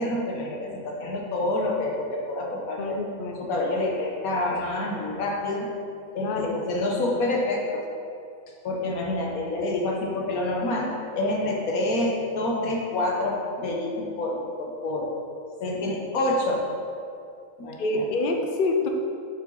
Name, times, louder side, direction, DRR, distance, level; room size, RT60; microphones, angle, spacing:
voice 1, 0.0-3.0 3.4-5.7 6.1-7.8 8.6-15.1 15.6-16.7 17.6-18.1, left 2 dB, 75° left, -1 dB, 1.5 m, -27 dB
voice 2, 2.8-3.4 6.2-6.5 17.8-18.9, left 2 dB, 45° left, 2 dB, 0.7 m, -26 dB
7.8 x 5.6 x 3.9 m, 2.4 s
omnidirectional pair, 1.6 m